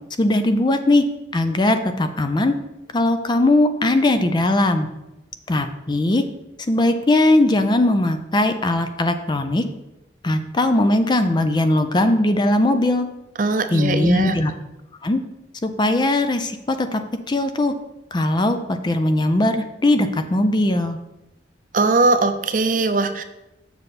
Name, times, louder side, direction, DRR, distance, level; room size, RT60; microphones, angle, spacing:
voice 1, 0.2-1.0 1.3-2.6 2.9-4.9 5.5-6.2 6.7-9.6 10.2-13.1 13.7-14.5 15.0-15.2 15.6-17.0 17.3-17.7 18.1-21.0, left 1 dB, 25° left, 8 dB, 0.4 m, -19 dB
voice 2, 13.4-14.4 21.7-23.2, right 3 dB, 45° right, 9 dB, 0.6 m, -20 dB
7.0 x 6.6 x 4.2 m, 0.94 s
head